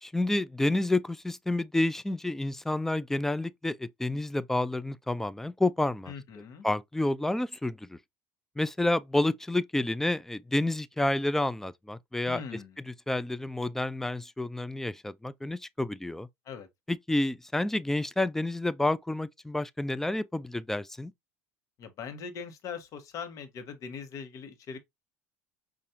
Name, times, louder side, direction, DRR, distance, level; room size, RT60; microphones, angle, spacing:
voice 1, 0.0-6.1 6.6-8.0 8.6-12.4 12.9-16.3 16.9-21.1, left 2 dB, 5° left, 0.3 m, -29 dB
voice 2, 6.1-6.7 12.2-12.8 16.4-16.7 21.8-24.8, left 6 dB, 45° left, 1.1 m, -41 dB
5.4 x 2.5 x 2.6 m
hypercardioid pair, 75°, 8 cm